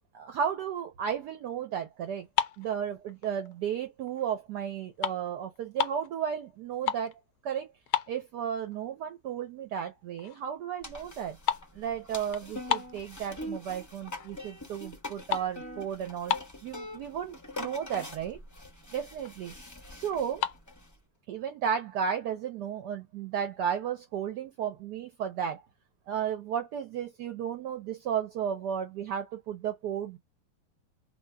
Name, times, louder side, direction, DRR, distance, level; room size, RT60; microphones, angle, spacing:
voice 1, 0.1-2.3 2.6-7.1 7.4-7.7 8.1-11.4 11.7-16.4 16.6-18.4 18.9-19.6 19.9-20.4 21.3-25.6 26.1-30.2, right 8 dB, 70° right, 1.1 m, -34 dB
sound 1, 2.2-3.6 4.1-4.3 4.6-6.1 6.6-7.2 7.5-7.6 7.9-8.8 9.2-9.3 9.8-9.9 10.2-10.5 10.8-13.6 14.1-14.5 14.8-16.8 17.5-17.6 17.8-18.0 18.4-18.5 18.7-19.4 20.2-20.6, left 11 dB, 80° left, 0.9 m, -33 dB
sound 2, 10.8-21.0, left 1 dB, 30° left, 0.3 m, -44 dB
2.8 x 2.8 x 3.2 m
omnidirectional pair, 2.2 m